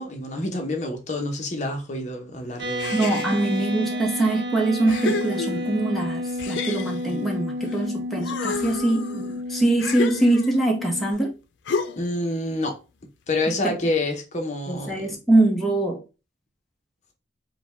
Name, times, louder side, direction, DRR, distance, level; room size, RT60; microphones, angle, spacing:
voice 1, 0.0-2.9 12.0-12.8 13.3-15.1, left 2 dB, 40° left, 0.9 m, -28 dB
sound 1, 2.6-11.1, left 1 dB, 85° right, 0.8 m, -31 dB
sound 2, 2.8-3.6 4.3-4.4 4.9-5.9 6.4-7.8 8.1-10.7 11.7-12.2, left 5 dB, 90° left, 0.5 m, -31 dB
voice 2, 2.9-11.3 13.6-13.7 14.7-16.0, right 2 dB, ahead, 0.8 m, -23 dB
5.0 x 2.2 x 3.4 m
head